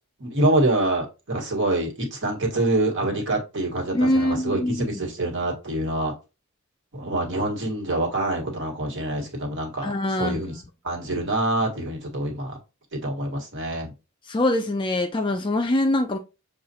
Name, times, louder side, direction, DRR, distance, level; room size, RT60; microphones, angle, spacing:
voice 1, 0.2-6.1 6.9-10.5 10.8-12.6 12.9-13.9, right 1 dB, 55° right, 1.3 m, -26 dB
voice 2, 3.9-5.0 9.8-10.4 14.3-16.2, left 1 dB, 20° left, 0.3 m, -23 dB
6.3 x 2.4 x 2.7 m
head